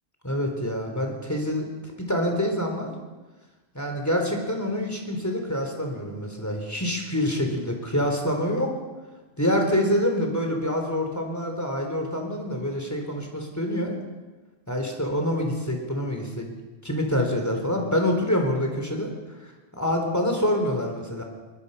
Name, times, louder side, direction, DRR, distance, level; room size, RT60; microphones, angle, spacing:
voice 1, 0.2-2.9 3.7-8.7 9.4-14.0 14.7-16.5 16.8-21.2, left 1 dB, 15° left, 2 dB, 3.7 m, -26 dB
22.5 x 21.0 x 5.6 m, 1.2 s
omnidirectional pair, 1.2 m